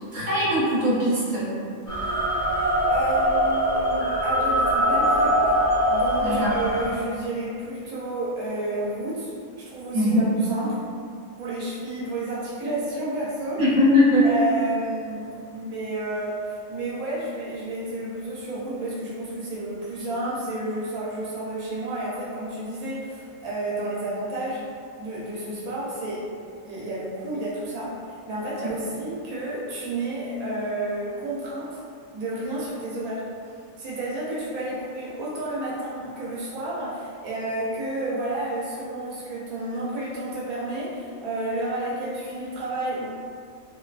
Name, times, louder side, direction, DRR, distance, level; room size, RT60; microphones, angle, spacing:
voice 1, 0.1-1.5 6.2-6.5 9.9-10.2 13.6-14.2, left 1 dB, 50° right, -10 dB, 1.2 m, -20 dB
sound 1, 1.9-6.9, equal, 75° left, 0.3 m, -22 dB
voice 2, 2.9-5.4 5.9-10.8 11.4-13.6 14.2-24.7 25.0-26.3 26.6-31.8 32.1-33.3 33.8-43.1, right 1 dB, 85° right, -6 dB, 1.0 m, -31 dB
2.6 x 2.2 x 2.3 m, 2.3 s
omnidirectional pair, 1.5 m